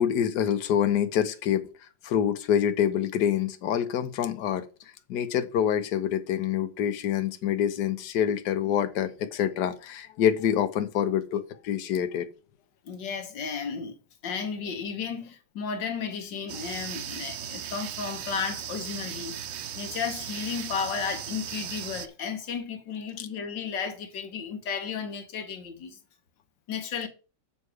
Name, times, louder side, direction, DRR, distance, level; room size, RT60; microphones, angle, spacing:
voice 1, 0.0-4.6 5.1-12.3 23.2-23.3, left 9 dB, 70° left, 1.4 m, -26 dB
voice 2, 12.9-14.0 14.2-19.4 19.8-26.0 26.7-27.1, left 6 dB, 85° left, 1.9 m, -33 dB
sound 1, 16.5-22.1, right 9 dB, 75° right, 0.6 m, -37 dB
7.0 x 6.7 x 4.7 m
omnidirectional pair, 1.9 m